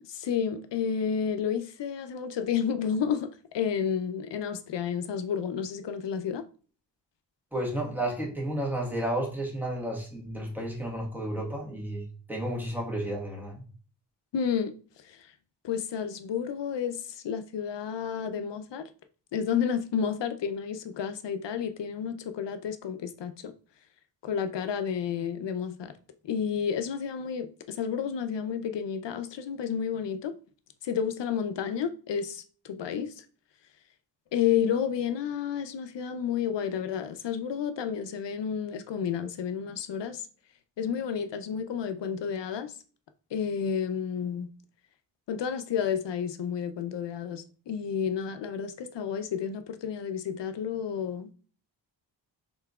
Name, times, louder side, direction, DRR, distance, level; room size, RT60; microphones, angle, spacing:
voice 1, 0.1-6.4 14.3-14.7 15.0-15.2 15.6-18.9 19.3-23.5 24.2-25.9 26.2-30.3 30.8-33.1 34.3-40.2 40.8-42.7 43.3-44.5 45.3-51.3, left 7 dB, 75° left, 0.6 m, -31 dB
voice 2, 7.5-13.6, right 1 dB, 5° right, 1.3 m, -32 dB
5.7 x 3.9 x 2.3 m
wide cardioid pair, 160°, 43 cm